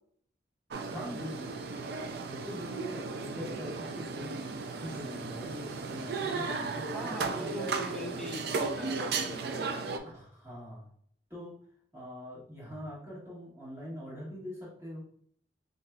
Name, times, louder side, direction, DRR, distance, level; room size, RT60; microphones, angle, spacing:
sound 1, 0.7-10.0, right 4 dB, 60° right, 0.3 m, -35 dB
voice 1, 0.9-1.5 2.2-7.6 10.1-10.9 11.3-11.5 11.9-15.0, left 1 dB, 15° right, -7 dB, 1.4 m, -43 dB
voice 2, 6.9-9.7, equal, 5° left, 0 dB, 0.5 m, -41 dB
4.9 x 2.6 x 2.2 m, 0.62 s
head